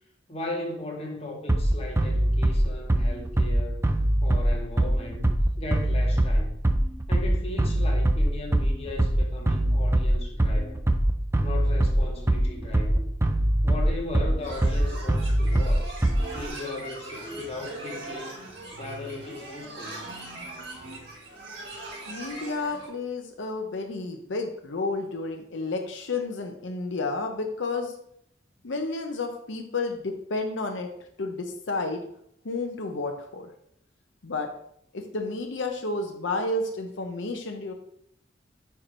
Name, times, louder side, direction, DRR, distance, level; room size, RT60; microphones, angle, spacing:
voice 1, 0.3-3.8 4.2-5.3 5.6-6.6 7.1-10.8 11.4-13.1 13.6-16.0 16.3-18.5 18.7-20.1, left 2 dB, 35° left, 1.3 m, -37 dB
Bass drum, 1.5-16.5, right 1 dB, 15° right, 0.5 m, -23 dB
sound 1, 14.4-22.9, right 2 dB, 70° right, 1.9 m, -40 dB
voice 2, 22.1-27.9 28.6-30.9 31.2-32.0 32.4-33.5 34.2-34.5 34.9-37.7, left 3 dB, 80° left, 0.7 m, -31 dB
4.6 x 4.5 x 5.1 m
head